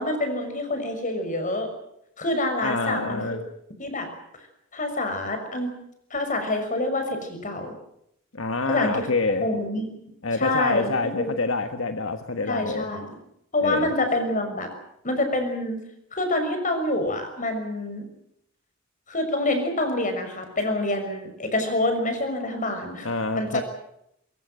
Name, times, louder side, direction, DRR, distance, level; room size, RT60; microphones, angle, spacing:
voice 1, 0.0-1.7 2.2-3.4 3.8-4.1 4.7-5.8 6.1-7.7 8.7-9.1 9.4-9.9 10.4-10.9 11.2-11.3 12.5-13.1 13.5-14.7 15.0-15.8 16.1-18.1 19.1-23.6, left 1 dB, 40° left, 7 dB, 6.3 m, -26 dB
voice 2, 2.6-3.4 8.3-9.5 10.2-12.9 13.6-13.9 23.0-23.6, left 3 dB, 75° left, 7 dB, 1.5 m, -26 dB
23.0 x 22.5 x 7.8 m, 0.76 s
head